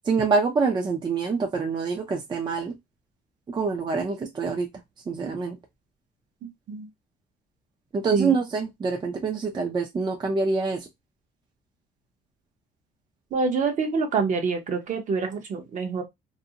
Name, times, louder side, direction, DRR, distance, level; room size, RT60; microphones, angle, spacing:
voice 1, 0.0-2.7 3.5-4.7 5.1-5.6 7.9-10.9, right 4 dB, 25° right, 0.4 m, -26 dB
voice 2, 6.4-6.9 8.1-8.4 13.3-16.0, right 4 dB, 50° right, 0.8 m, -26 dB
2.5 x 2.0 x 2.7 m
cardioid pair, 110°, 17 cm